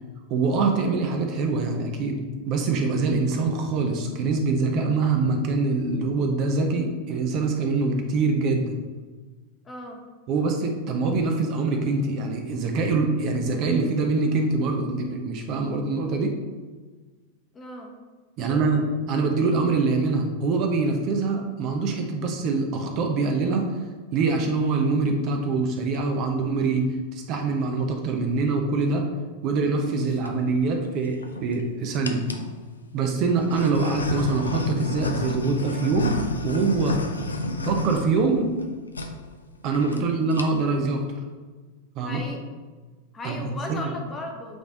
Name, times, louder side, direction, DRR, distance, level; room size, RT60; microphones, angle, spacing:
voice 1, 0.3-2.2 2.5-8.7 10.3-16.3 18.4-23.6 24.1-26.9 27.1-29.1 29.4-32.2 32.9-37.0 37.6-38.5 39.6-41.0 42.0-42.2 43.2-43.8, right 3 dB, 40° right, 3 dB, 0.7 m, -24 dB
voice 2, 9.6-10.0 17.5-17.9 18.4-18.6 39.9-40.1 42.0-42.4 43.1-44.6, left 1 dB, 15° left, 1 dB, 1.0 m, -36 dB
sound 1, 29.9-30.3 31.0-31.6 32.0-32.5 33.2-38.7 38.9-39.1 39.4-39.5 39.7-40.0 40.3-40.8, left 2 dB, 75° left, 0.5 m, -30 dB
8.1 x 3.4 x 3.8 m, 1.4 s
figure-of-eight pair, 90°, 0 cm